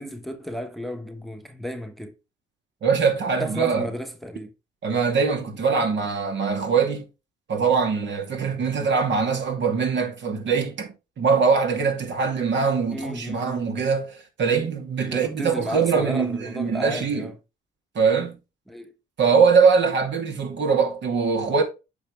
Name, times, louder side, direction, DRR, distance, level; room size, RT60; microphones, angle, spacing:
voice 1, 0.0-2.1 3.4-4.5 12.9-13.7 15.1-17.3 18.7-18.9, equal, ahead, 1.2 m, -33 dB
voice 2, 2.8-3.9 4.8-7.1 7.5-17.3 17.9-18.4 19.2-21.6, right 5 dB, 60° right, 2.6 m, -22 dB
8.8 x 5.9 x 3.3 m
supercardioid pair, 80°, 21 cm